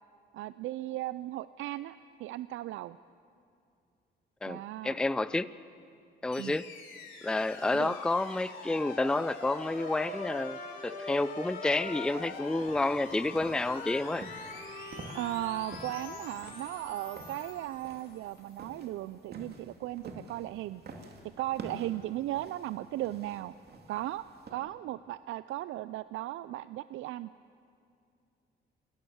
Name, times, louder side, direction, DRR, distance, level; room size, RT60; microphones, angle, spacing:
voice 1, 0.3-3.0 4.5-4.9 6.4-6.6 7.7-7.9 15.1-20.8 21.4-23.5 23.9-24.2 24.5-27.3, right 15 dB, 85° right, 15 dB, 0.5 m, -36 dB
voice 2, 4.4-5.5 6.2-6.7 7.2-14.3, left 2 dB, 5° left, 16 dB, 0.4 m, -30 dB
sound 1, 6.3-18.6, left 4 dB, 80° left, 3.4 m, -45 dB
Trumpet, 9.3-17.7, left 3 dB, 40° left, 5.4 m, -46 dB
sound 2, 12.1-24.5, right 3 dB, 55° right, 2.7 m, -50 dB
27.5 x 18.0 x 7.1 m, 2.5 s
cardioid pair, 90°, 20 cm